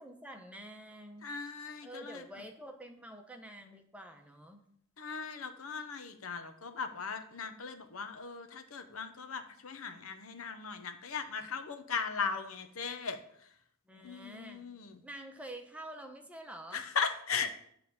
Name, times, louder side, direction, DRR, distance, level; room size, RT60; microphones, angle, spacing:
voice 1, 0.0-1.3 1.8-4.6 13.9-14.7 15.0-16.8, right 1 dB, 5° right, 4 dB, 0.9 m, -48 dB
voice 2, 1.2-2.2 5.0-13.2 14.0-15.0 16.7-17.6, left 5 dB, 80° left, 8 dB, 0.9 m, -38 dB
10.0 x 3.5 x 7.0 m, 0.67 s
head